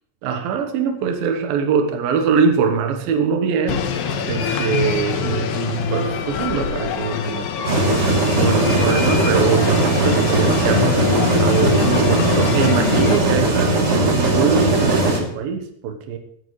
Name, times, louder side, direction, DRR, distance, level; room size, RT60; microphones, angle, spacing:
voice 1, 0.2-7.8 8.4-16.2, right 6 dB, 85° right, 5 dB, 2.9 m, -23 dB
sound 1, 3.7-13.2, left 7 dB, 80° left, 2.8 m, -24 dB
sound 2, 7.6-15.2, right 2 dB, 40° right, 3.6 m, -18 dB
23.0 x 9.2 x 3.2 m, 0.68 s
omnidirectional pair, 4.0 m